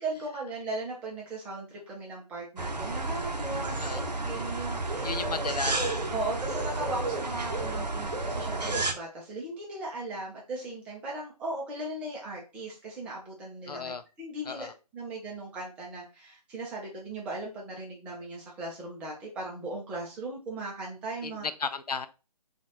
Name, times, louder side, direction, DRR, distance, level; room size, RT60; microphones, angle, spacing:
voice 1, 0.0-5.3 6.1-21.4, right 2 dB, 5° right, -4 dB, 0.6 m, -38 dB
sound 1, 2.6-8.9, right 2 dB, 85° right, 0.8 m, -31 dB
voice 2, 5.0-5.9 13.7-14.0 14.5-14.7 21.2-21.3 21.6-22.1, left 5 dB, 70° left, 11 dB, 0.5 m, -34 dB
4.0 x 2.5 x 4.1 m, 0.30 s
figure-of-eight pair, 145°, 21 cm